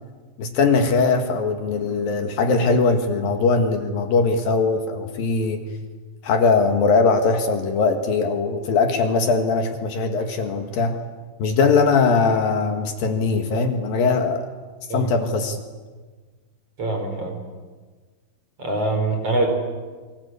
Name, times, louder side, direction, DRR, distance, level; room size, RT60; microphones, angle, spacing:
voice 1, 0.4-5.6 6.2-11.0 11.4-14.5 14.9-15.6, left 4 dB, 65° left, 5 dB, 3.4 m, -20 dB
voice 2, 16.8-17.4 18.6-19.5, right 2 dB, 35° right, 4 dB, 5.4 m, -23 dB
29.5 x 24.0 x 8.3 m, 1.4 s
omnidirectional pair, 4.6 m